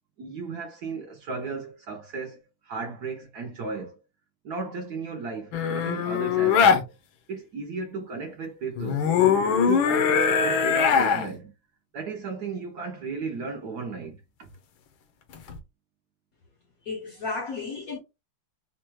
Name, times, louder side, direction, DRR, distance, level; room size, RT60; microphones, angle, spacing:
voice 1, 0.2-4.0 4.4-6.9 7.3-9.1 9.7-11.5 11.9-14.5, right 4 dB, 60° right, 1.1 m, -35 dB
sound 1, 5.5-6.8 8.8-11.3 15.3-15.6, left 7 dB, 75° left, 1.5 m, -21 dB
voice 2, 16.9-18.0, left 4 dB, 60° left, 1.0 m, -33 dB
4.4 x 2.3 x 4.6 m
omnidirectional pair, 2.3 m